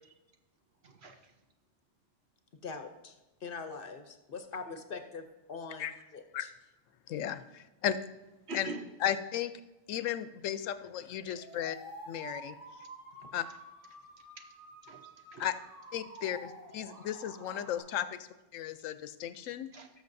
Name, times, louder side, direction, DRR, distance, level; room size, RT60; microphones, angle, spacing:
voice 1, 0.8-1.3 4.7-4.8 8.5-8.9 14.4-14.5 14.8-15.5 19.7-19.9, right 2 dB, 60° right, 5 dB, 1.1 m, -44 dB
voice 2, 2.6-3.1 3.4-6.5 13.2-13.3, left 4 dB, 50° left, 7 dB, 0.8 m, -43 dB
voice 3, 7.1-8.0 8.5-8.7 9.0-9.5 9.9-11.8 12.1-12.5 13.3-13.4 15.4-15.5 15.9-18.2 18.5-19.7, left 10 dB, 80° left, 12 dB, 0.9 m, -35 dB
sound 1, 10.9-17.8, right 1 dB, 40° right, 3.2 m, -50 dB
18.5 x 6.4 x 2.6 m, 1.1 s
omnidirectional pair, 1.3 m